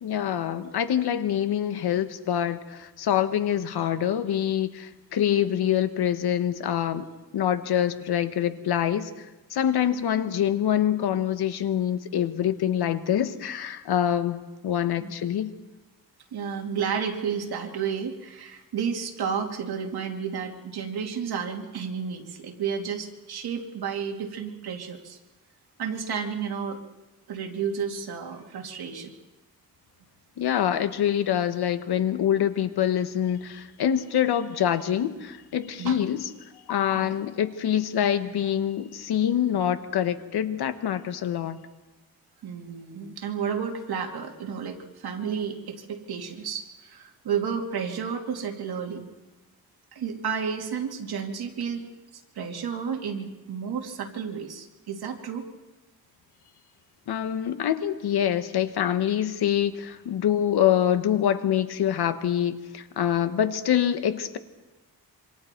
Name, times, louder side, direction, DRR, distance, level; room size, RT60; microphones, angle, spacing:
voice 1, 0.0-7.1 7.3-15.5 30.4-36.3 36.7-41.6 57.1-64.4, left 10 dB, 85° left, 10 dB, 1.3 m, -25 dB
voice 2, 16.3-25.2 25.8-26.8 27.3-29.1 35.8-36.0 36.9-37.2 42.4-49.0 49.9-51.9 52.3-55.4, right 7 dB, 80° right, 2 dB, 2.7 m, -31 dB
26.5 x 25.0 x 4.5 m, 1.1 s
wide cardioid pair, 140°, 38 cm